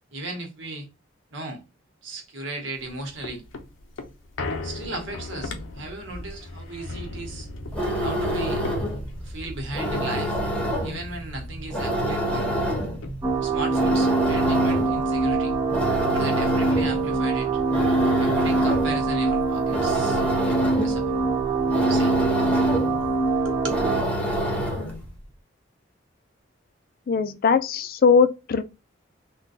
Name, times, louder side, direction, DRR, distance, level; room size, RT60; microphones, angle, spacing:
voice 1, 0.1-0.9 1.3-1.6 2.0-3.4 4.6-7.5 8.0-8.6 9.2-10.4 10.8-12.6 13.4-15.5 16.1-17.6 18.2-21.2 21.8-22.1 23.4-23.8, right 2 dB, 75° right, 1.2 m, -36 dB
sound 1, 2.7-11.5 11.8-11.9 12.2-13.6 14.0-14.1, left 2 dB, 85° left, 0.6 m, -38 dB
sound 2, 7.6-25.1, equal, 5° left, 0.8 m, -27 dB
sound 3, 13.2-24.0, right 3 dB, 20° right, 0.5 m, -23 dB
voice 2, 27.1-28.6, left 5 dB, 50° left, 0.4 m, -20 dB
3.7 x 2.2 x 2.6 m
head